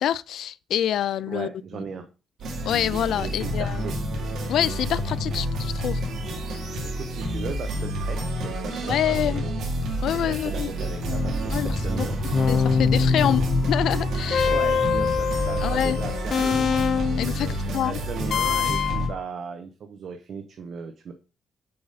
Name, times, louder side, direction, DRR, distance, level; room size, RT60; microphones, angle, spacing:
voice 1, 0.0-1.5 2.7-3.8 4.5-6.0 8.8-9.4 10.0-10.7 11.5-12.1 12.5-14.5 15.6-16.0 17.2-18.0, left 10 dB, 75° left, 0.3 m, -26 dB
voice 2, 1.3-2.1 3.2-3.9 6.8-9.6 10.2-12.2 13.2-13.5 14.5-16.7 17.4-21.1, right 5 dB, 50° right, 0.8 m, -37 dB
sound 1, 2.4-19.1, equal, 80° right, 2.2 m, -29 dB
sound 2, 11.1-11.6 12.3-17.3 18.3-19.1, left 6 dB, 50° left, 0.8 m, -24 dB
sound 3, 11.2-17.4, right 1 dB, ahead, 0.4 m, -34 dB
6.7 x 5.2 x 4.1 m
cardioid pair, 145°, 0 cm